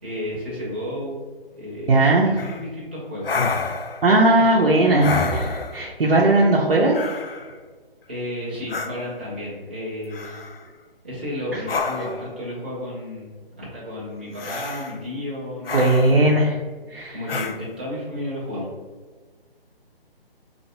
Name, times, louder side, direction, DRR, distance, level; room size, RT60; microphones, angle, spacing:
voice 1, 0.0-1.2 1.6-2.0 2.2-3.3 4.3-5.6 8.1-10.4 11.0-16.5 17.1-18.7, left 1 dB, 10° right, -9 dB, 0.4 m, -32 dB
voice 2, 1.9-2.3 4.0-5.4 5.7-7.0 11.5-11.6 15.7-16.5 16.9-17.2, right 2 dB, 65° right, -3 dB, 0.6 m, -17 dB
sound 1, 2.4-2.6 3.2-4.1 5.0-5.9 6.9-7.5 8.7-8.9 10.1-10.6 11.7-12.3 14.4-15.0 15.6-16.3 17.3-17.6, left 4 dB, 70° left, 0.5 m, -28 dB
4.4 x 2.5 x 2.8 m, 1.4 s
figure-of-eight pair, 145°, 30 cm